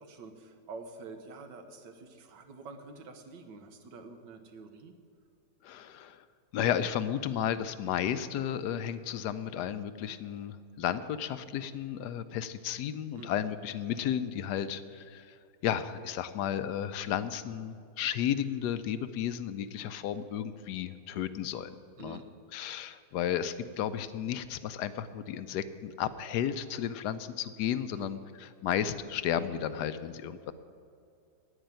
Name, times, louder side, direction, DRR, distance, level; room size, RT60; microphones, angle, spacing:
voice 1, 0.0-4.9 13.2-13.3 22.0-22.3 28.0-28.1, right 4 dB, 90° right, 7 dB, 1.8 m, -47 dB
voice 2, 5.6-6.2 6.5-15.4 15.6-22.2 22.5-30.5, left 9 dB, 75° left, 13 dB, 1.2 m, -33 dB
9.7 x 9.0 x 9.0 m, 2.5 s
omnidirectional pair, 1.8 m